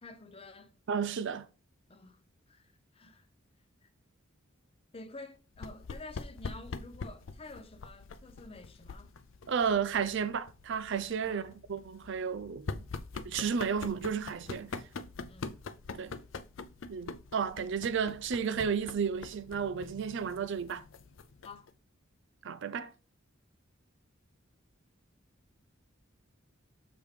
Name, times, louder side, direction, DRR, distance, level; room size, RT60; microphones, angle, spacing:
voice 1, 0.0-0.7 1.9-2.2 2.5-3.3 3.8-3.9 4.9-9.1 11.3-11.6 15.3-15.5 21.4-21.7, left 2 dB, 30° left, 0.7 m, -49 dB
voice 2, 0.9-1.5 9.5-12.8 13.2-14.7 16.0-16.1 16.9-20.8 22.4-22.9, right 6 dB, 65° right, 0.5 m, -32 dB
sound 1, 5.5-21.7, left 4 dB, 70° left, 0.5 m, -44 dB
6.9 x 3.4 x 4.8 m
head